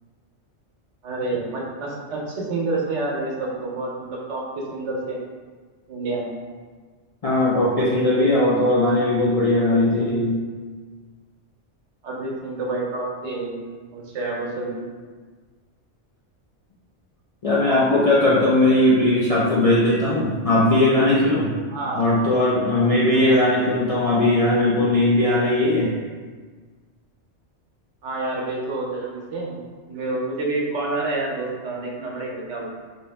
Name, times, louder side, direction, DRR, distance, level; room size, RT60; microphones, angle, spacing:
voice 1, 1.0-5.2 5.9-6.3 12.0-13.6 13.9-14.8 21.7-22.0 23.1-23.4 28.0-32.7, right 2 dB, 80° right, -2 dB, 1.0 m, -28 dB
voice 2, 7.2-10.4 17.4-21.5 21.9-25.9, left 1 dB, 55° left, -7 dB, 0.4 m, -19 dB
3.0 x 2.6 x 3.4 m, 1.5 s
omnidirectional pair, 1.2 m